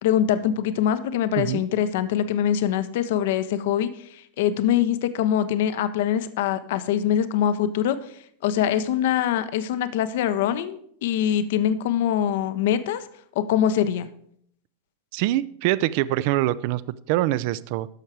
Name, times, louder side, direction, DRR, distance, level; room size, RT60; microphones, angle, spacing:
voice 1, 0.0-3.9 4.4-8.0 8.4-13.0 13.4-14.1, left 10 dB, 55° left, 13 dB, 0.6 m, -23 dB
voice 2, 15.1-16.8 17.1-17.9, right 15 dB, 45° right, 19 dB, 0.4 m, -24 dB
11.5 x 6.6 x 4.7 m, 0.66 s
figure-of-eight pair, 90°, 0 cm